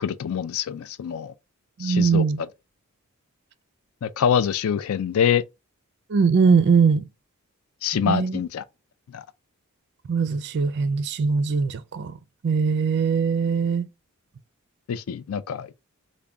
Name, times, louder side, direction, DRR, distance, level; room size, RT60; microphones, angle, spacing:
voice 1, 0.0-1.3 1.8-2.2 4.0-5.4 7.8-8.6 9.1-9.2 14.9-15.7, left 8 dB, 70° left, 0.3 m, -25 dB
voice 2, 1.8-2.4 6.1-7.0 8.0-8.4 10.1-12.1 12.4-13.9, right 5 dB, 50° right, 0.4 m, -21 dB
3.4 x 2.2 x 3.6 m
head